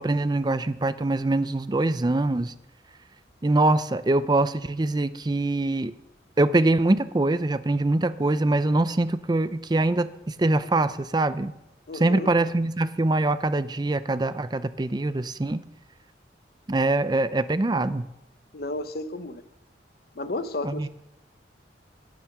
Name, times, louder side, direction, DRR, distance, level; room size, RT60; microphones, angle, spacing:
voice 1, 0.0-2.5 3.4-5.9 6.4-11.5 12.0-15.6 16.7-18.1 20.6-20.9, right 2 dB, 25° right, 13 dB, 0.5 m, -23 dB
voice 2, 11.9-12.3 18.5-19.4 20.1-20.9, left 2 dB, 60° left, 10 dB, 0.9 m, -32 dB
10.5 x 8.9 x 6.0 m, 0.87 s
head